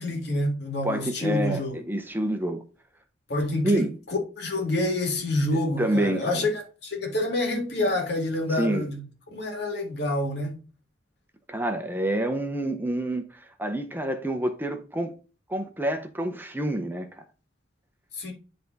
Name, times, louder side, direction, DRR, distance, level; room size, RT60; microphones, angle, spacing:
voice 1, 0.0-1.8 3.3-9.0 9.3-10.6 18.1-18.3, left 1 dB, 60° left, 2.2 m, -27 dB
voice 2, 0.8-2.6 3.6-3.9 5.8-6.5 8.5-8.9 11.5-15.1 15.5-17.2, right 1 dB, 10° right, 0.7 m, -28 dB
10.0 x 3.5 x 4.0 m
head